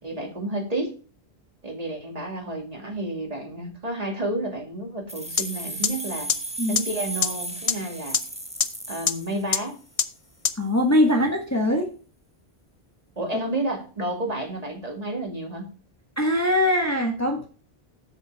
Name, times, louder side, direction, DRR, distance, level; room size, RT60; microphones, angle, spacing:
voice 1, 0.0-0.9 1.6-6.3 6.7-8.2 8.9-9.8 13.2-15.7, right 1 dB, 35° right, 1 dB, 2.4 m, -30 dB
sound 1, 5.1-9.9, right 2 dB, 5° right, 0.9 m, -35 dB
sound 2, 5.4-5.5 5.8-5.9 6.3-6.4 6.8-6.9 7.2-7.3 7.7-7.8 8.1-8.2 8.6-8.7 9.1-9.2 9.5-9.6 10.0-10.1 10.4-10.5, left 6 dB, 40° left, 0.6 m, -20 dB
voice 2, 10.6-11.9 16.2-17.6, left 1 dB, 15° left, 2 dB, 1.2 m, -22 dB
7.8 x 6.8 x 4.7 m, 0.37 s
omnidirectional pair, 1.1 m